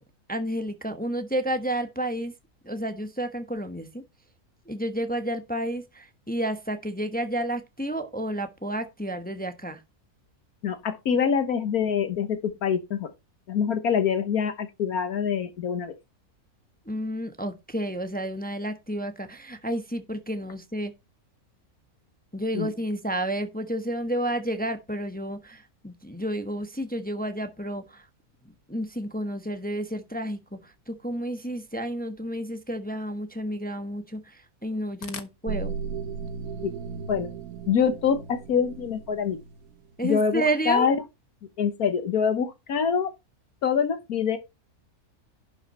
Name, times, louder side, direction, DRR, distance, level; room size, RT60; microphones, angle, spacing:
voice 1, 0.3-2.3 2.6-4.0 4.7-9.8 16.8-20.9 22.3-28.1 28.7-35.7 40.0-40.9, right 1 dB, 5° left, 0.9 m, -31 dB
voice 2, 10.6-13.1 13.5-15.9 22.5-22.7 36.6-36.7 37.1-37.3 37.7-39.4 40.0-41.0 41.6-43.1 43.6-44.4, left 7 dB, 75° left, 1.5 m, -25 dB
sound 1, 35.5-39.7, right 5 dB, 75° right, 1.3 m, -36 dB
11.0 x 5.6 x 4.2 m
omnidirectional pair, 1.6 m